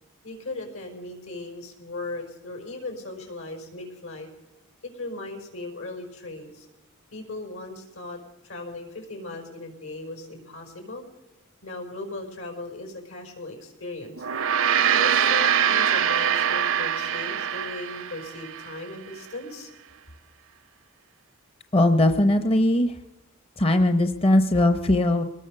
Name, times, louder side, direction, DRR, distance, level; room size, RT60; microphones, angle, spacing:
voice 1, 0.2-4.3 4.8-6.7 7.1-11.1 11.6-14.3 14.9-19.7, left 2 dB, 80° left, 3 dB, 5.5 m, -37 dB
Gong, 14.1-18.8, right 8 dB, 65° right, 0.6 m, -23 dB
voice 2, 21.7-23.0 23.6-25.2, left 1 dB, 25° left, 8 dB, 0.8 m, -20 dB
23.5 x 19.0 x 6.7 m, 0.96 s
head